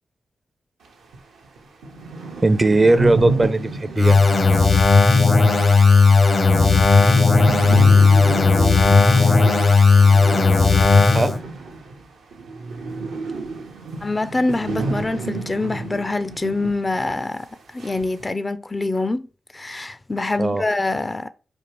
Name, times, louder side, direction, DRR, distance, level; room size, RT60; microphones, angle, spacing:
sound 1, 1.1-1.2 1.6-1.7 1.8-12.1 12.3-16.8 17.1-17.2 17.8-18.3, right 3 dB, 90° right, 0.7 m, -29 dB
voice 1, 2.4-4.2 11.1-11.3 20.4-20.6, right 2 dB, 35° right, 0.4 m, -18 dB
sound 2, 4.0-11.4, left 4 dB, 60° left, 0.8 m, -14 dB
voice 2, 14.0-17.5 17.7-19.3 19.5-21.3, left 2 dB, 30° left, 0.4 m, -25 dB
4.4 x 2.4 x 3.1 m
supercardioid pair, 45°, 0 cm